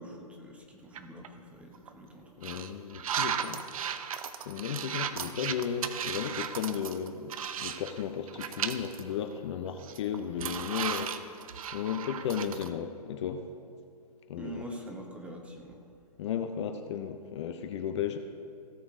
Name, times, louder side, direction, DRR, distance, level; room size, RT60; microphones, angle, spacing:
voice 1, 0.0-2.3 14.4-15.8, equal, 5° right, 1 dB, 1.1 m, -44 dB
sound 1, 0.9-1.3 1.7-1.9 2.4-8.0 8.3-9.0 9.4-9.5 9.8-12.7, right 8 dB, 60° right, 0.8 m, -35 dB
voice 2, 2.4-4.2 4.5-11.3 11.7-13.4 14.3-14.6 16.2-18.2, left 8 dB, 45° left, 7 dB, 0.7 m, -35 dB
17.0 x 7.1 x 3.7 m, 2.5 s
hypercardioid pair, 150°, 20 cm